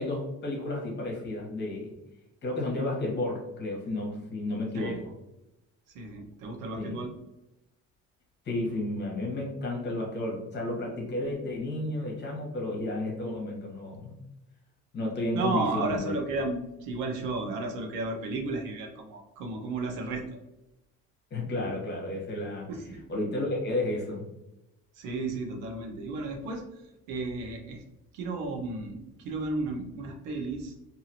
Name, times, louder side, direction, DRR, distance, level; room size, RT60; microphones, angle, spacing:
voice 1, 0.0-1.9 2.4-5.0 6.8-7.0 8.4-14.2 14.9-16.2 21.3-22.7 23.1-24.2, left 2 dB, 35° left, -2 dB, 1.1 m, -32 dB
voice 2, 5.9-7.1 15.3-20.3 22.7-23.0 24.9-26.8 27.1-27.8 28.1-30.7, right 3 dB, 85° right, 3 dB, 0.7 m, -33 dB
2.7 x 2.5 x 2.7 m, 0.90 s
cardioid pair, 130°, 31 cm